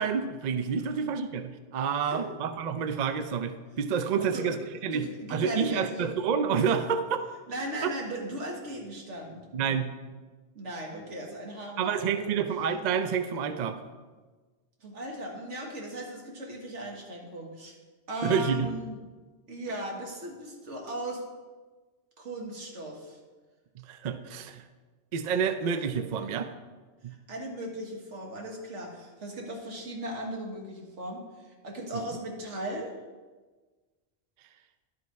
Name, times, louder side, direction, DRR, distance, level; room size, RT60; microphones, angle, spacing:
voice 1, 0.0-4.6 4.8-7.2 7.8-7.9 9.5-9.9 11.8-13.8 18.2-18.7 23.9-24.6 25.1-26.5 27.0-27.1 31.9-32.0, right 6 dB, 55° right, 9 dB, 0.5 m, -28 dB
voice 2, 4.2-4.6 4.9-5.8 7.5-9.4 10.6-12.3 14.8-17.8 18.1-19.0 19.5-21.2 22.2-23.2 27.3-31.2 31.6-32.9, right 1 dB, 80° right, 0 dB, 1.8 m, -37 dB
11.0 x 5.3 x 4.6 m, 1.3 s
omnidirectional pair, 1.2 m